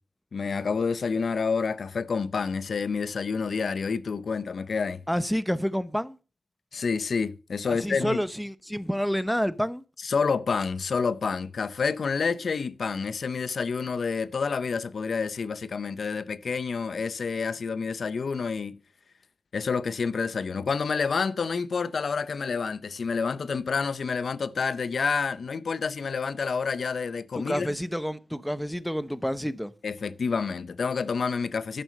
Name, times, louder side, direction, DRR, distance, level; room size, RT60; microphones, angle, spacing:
voice 1, 0.3-5.0 6.7-8.2 10.0-18.8 19.5-27.7 29.8-31.8, left 5 dB, 70° left, 0.6 m, -28 dB
voice 2, 5.1-6.2 7.7-9.8 27.4-29.7, equal, ahead, 0.7 m, -29 dB
11.0 x 6.2 x 6.4 m
wide cardioid pair, 105°, 0 cm